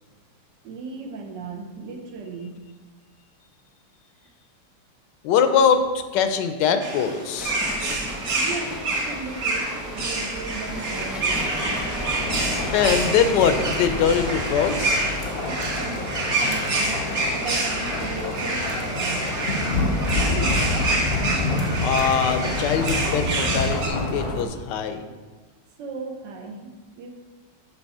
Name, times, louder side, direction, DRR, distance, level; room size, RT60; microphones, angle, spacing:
voice 1, 0.6-2.6 8.3-11.8 15.4-20.9 25.8-27.1, right 4 dB, 80° right, 4 dB, 1.5 m, -36 dB
voice 2, 5.2-7.6 12.7-15.2 21.8-25.0, left 7 dB, 80° left, 8 dB, 1.2 m, -22 dB
sound 1, 6.8-23.9, right 2 dB, 55° right, 1.5 m, -28 dB
sound 2, 7.4-15.0, equal, ahead, 0.8 m, -34 dB
sound 3, 12.2-24.4, left 2 dB, 50° left, 0.8 m, -28 dB
6.9 x 5.4 x 4.1 m, 1.3 s
omnidirectional pair, 1.9 m